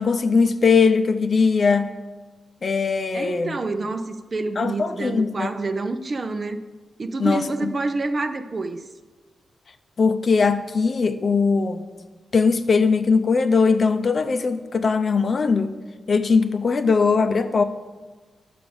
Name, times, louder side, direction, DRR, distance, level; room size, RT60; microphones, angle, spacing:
voice 1, 0.0-1.9 2.6-3.6 4.6-5.5 7.2-7.7 10.0-11.8 12.3-15.7 16.1-17.6, left 4 dB, 45° left, 10 dB, 0.6 m, -20 dB
voice 2, 3.1-6.6 7.0-8.8, right 3 dB, 40° right, 9 dB, 0.6 m, -27 dB
11.0 x 5.1 x 7.0 m, 1.3 s
cardioid pair, 100°, 0 cm